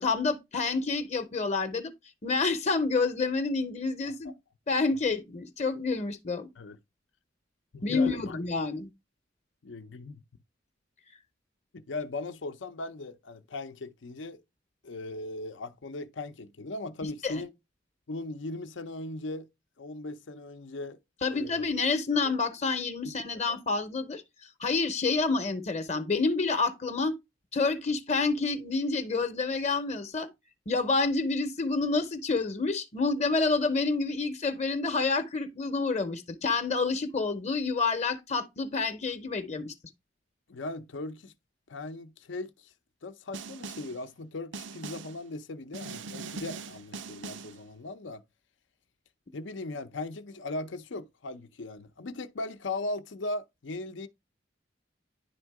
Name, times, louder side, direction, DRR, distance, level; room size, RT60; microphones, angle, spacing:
voice 1, 0.0-1.9 2.2-4.3 4.7-6.5 7.8-8.9 17.2-17.4 21.2-24.2 24.6-27.1 27.5-30.3 30.7-39.7, left 4 dB, 35° left, 0.8 m, -28 dB
voice 2, 7.7-8.4 9.6-10.2 11.7-14.4 14.8-17.5 18.1-19.5 19.8-21.0 21.3-21.7 23.3-23.4 40.5-41.3 41.7-42.7 43.0-48.2 49.3-54.1, left 2 dB, 75° left, 0.6 m, -38 dB
Snare drum, 43.3-44.0 44.5-45.2 45.7-47.6, right 4 dB, 70° right, 0.5 m, -41 dB
10.5 x 3.6 x 4.7 m
head